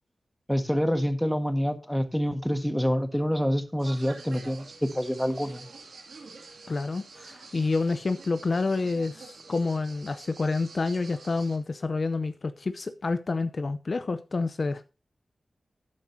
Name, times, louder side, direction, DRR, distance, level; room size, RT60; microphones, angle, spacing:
voice 1, 0.5-4.7 4.9-5.6, equal, 5° left, 1.5 m, -27 dB
sound 1, 3.8-11.6, right 4 dB, 90° right, 2.4 m, -47 dB
voice 2, 6.7-14.8, left 3 dB, 50° left, 0.7 m, -28 dB
12.0 x 10.0 x 2.8 m
wide cardioid pair, 85°, 0 cm